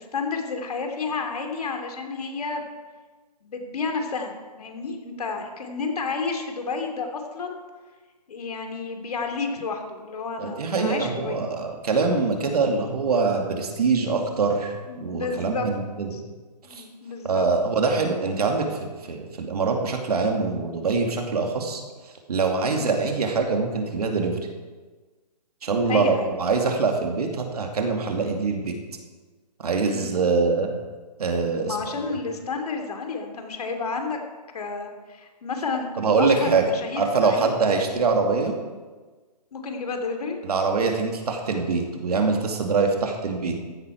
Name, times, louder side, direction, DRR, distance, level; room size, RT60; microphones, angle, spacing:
voice 1, 0.0-2.7 3.4-7.6 8.3-11.4 14.9-15.7 16.1-16.2 16.6-17.5 22.7-22.9 25.9-26.3 29.8-30.1 31.6-34.2 34.5-37.5 39.5-40.4, left 4 dB, 65° left, 4 dB, 2.8 m, -31 dB
voice 2, 10.4-16.2 16.7-16.8 17.2-21.8 22.3-24.4 25.6-28.7 29.6-30.7 31.2-31.8 36.0-36.7 37.0-38.5 40.4-43.6, right 4 dB, 65° right, 3 dB, 2.5 m, -24 dB
15.0 x 11.0 x 4.6 m, 1.3 s
hypercardioid pair, 150°, 21 cm